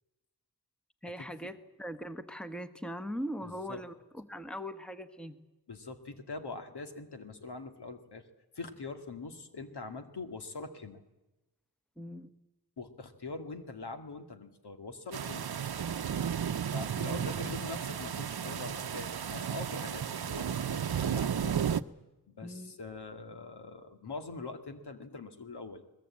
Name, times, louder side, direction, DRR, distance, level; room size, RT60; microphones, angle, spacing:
voice 1, 1.0-5.4 12.0-12.3 17.0-17.5 22.4-22.7, equal, ahead, 9 dB, 1.3 m, -41 dB
voice 2, 3.4-3.8 5.7-8.2 8.5-11.0 12.8-15.5 16.7-21.5 22.3-25.8, left 3 dB, 85° left, 6 dB, 2.3 m, -43 dB
sound 1, 15.1-21.8, right 8 dB, 70° right, 0.8 m, -33 dB
23.0 x 20.0 x 8.6 m, 1.0 s
wide cardioid pair, 105°, 39 cm